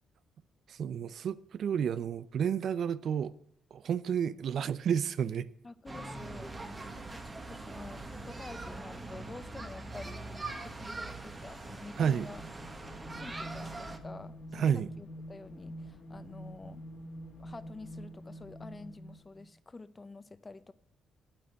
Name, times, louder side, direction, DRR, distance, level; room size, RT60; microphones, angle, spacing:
voice 1, 0.7-3.3 3.7-5.5 12.0-12.3 14.5-14.9, right 8 dB, 60° right, 0.5 m, -31 dB
voice 2, 5.6-6.5 6.9-10.2 10.6-12.4 13.1-16.8 17.4-20.7, left 3 dB, 25° left, 0.7 m, -49 dB
sound 1, 5.9-14.0, right 2 dB, 25° right, 1.5 m, -42 dB
sound 2, 11.9-19.5, equal, 75° left, 2.5 m, -47 dB
8.9 x 8.8 x 8.2 m
cardioid pair, 90°, 0 cm